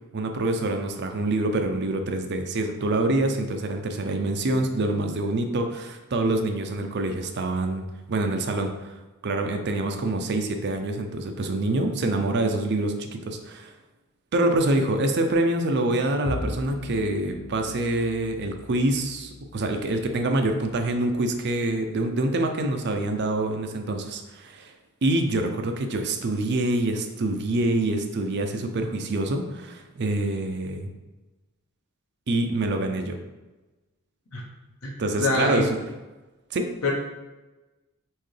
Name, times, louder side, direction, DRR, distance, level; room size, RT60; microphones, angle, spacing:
voice 1, 0.1-8.7 9.2-13.7 14.3-24.7 25.0-30.9 32.3-33.2 35.0-35.7 36.5-36.7, right 2 dB, 50° right, 5 dB, 0.5 m, -26 dB
Bowed string instrument, 16.2-22.7, left 2 dB, 90° left, 0.6 m, -40 dB
voice 2, 34.8-35.7 36.8-36.9, left 2 dB, 70° left, -1 dB, 1.1 m, -25 dB
4.5 x 3.5 x 3.3 m, 1.1 s
head